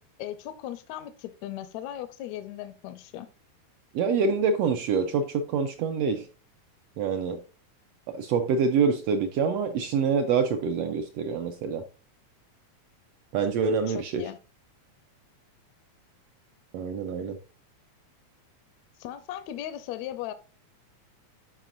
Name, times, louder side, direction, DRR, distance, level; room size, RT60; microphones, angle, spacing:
voice 1, 0.2-3.3 13.9-14.4 19.0-20.3, left 12 dB, 80° left, 1.8 m, -37 dB
voice 2, 3.9-6.3 7.0-7.4 8.1-11.8 13.3-14.2 16.7-17.4, right 5 dB, 80° right, 1.4 m, -26 dB
11.5 x 5.0 x 2.5 m
omnidirectional pair, 3.5 m